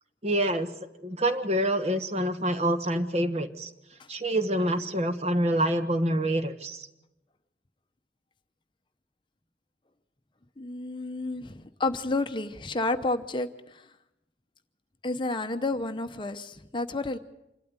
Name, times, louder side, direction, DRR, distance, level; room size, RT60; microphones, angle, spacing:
voice 1, 0.2-0.7 1.0-3.7 4.1-6.9, right 1 dB, 35° right, 8 dB, 1.3 m, -26 dB
voice 2, 10.6-13.8 15.0-17.2, left 2 dB, 25° left, 8 dB, 0.8 m, -30 dB
26.0 x 12.5 x 9.6 m, 0.91 s
head